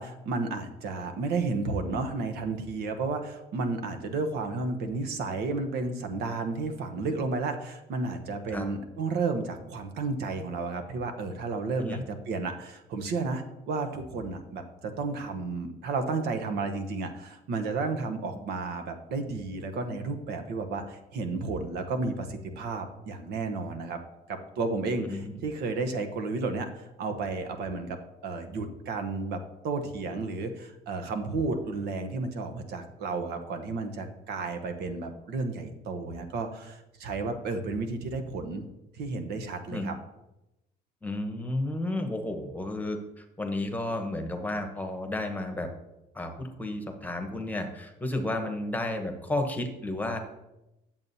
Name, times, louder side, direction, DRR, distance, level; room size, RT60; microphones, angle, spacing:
voice 1, 0.0-24.0 24.3-38.7 38.9-40.0, right 3 dB, 75° right, 6 dB, 0.9 m, -32 dB
voice 2, 41.0-45.7 46.1-50.2, left 1 dB, 10° left, 4 dB, 1.0 m, -32 dB
10.5 x 7.2 x 2.7 m, 0.92 s
cardioid pair, 110°, 17 cm